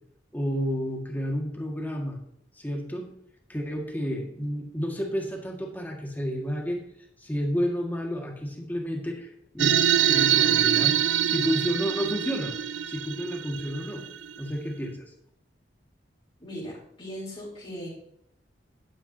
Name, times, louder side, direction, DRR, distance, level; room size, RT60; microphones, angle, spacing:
voice 1, 0.3-2.2 2.6-3.1 3.5-6.8 7.2-11.0 11.2-12.6 12.9-14.0 14.4-15.1, equal, 10° left, 0 dB, 1.8 m, -30 dB
sound 1, 9.6-14.5, right 10 dB, 85° right, 0.5 m, -24 dB
voice 2, 16.4-17.9, equal, 30° left, -6 dB, 3.6 m, -38 dB
11.0 x 10.0 x 2.8 m, 0.73 s
head